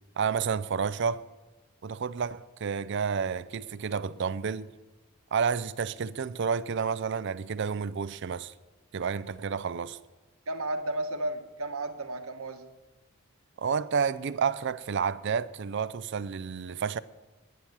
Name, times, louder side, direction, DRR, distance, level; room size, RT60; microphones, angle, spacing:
voice 1, 0.2-1.2 1.8-4.7 5.3-8.5 8.9-10.0 13.6-17.0, right 6 dB, 55° right, 0.4 m, -30 dB
voice 2, 10.5-12.7, right 1 dB, 85° right, 1.2 m, -33 dB
10.0 x 9.3 x 8.8 m
head